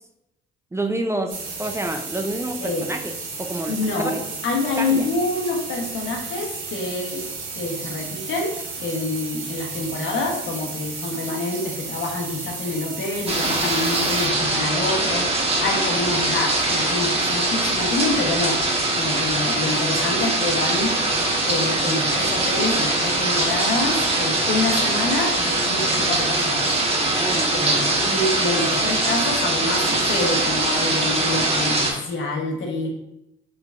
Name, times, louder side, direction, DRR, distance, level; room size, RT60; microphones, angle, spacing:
voice 1, 0.7-3.1 3.4-4.1 4.8-5.1 27.0-27.8, right 1 dB, 15° right, 4 dB, 0.4 m, -28 dB
sound 1, 1.3-14.3, right 4 dB, 85° right, 0.9 m, -33 dB
voice 2, 3.7-4.2 4.4-7.2 7.5-21.0 21.4-26.8 27.5-32.9, left 2 dB, 75° left, 0 dB, 1.2 m, -27 dB
sound 2, 13.3-31.9, right 2 dB, 30° right, 1.3 m, -22 dB
3.8 x 3.4 x 3.6 m, 0.83 s
cardioid pair, 90°, 20 cm